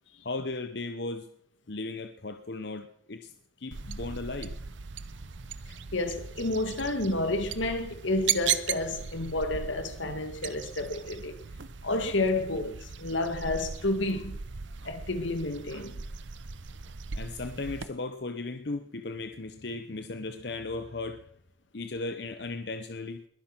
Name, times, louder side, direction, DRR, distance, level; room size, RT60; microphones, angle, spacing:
voice 1, 0.2-1.3 1.7-3.3 3.6-4.5 17.2-21.2 21.7-23.2, left 3 dB, 60° left, 0.9 m, -36 dB
sound 1, 3.7-17.9, right 8 dB, 75° right, 0.8 m, -37 dB
voice 2, 5.9-11.4 11.8-14.4 14.8-16.0, left 2 dB, 85° left, 2.1 m, -30 dB
21.0 x 10.5 x 6.0 m
head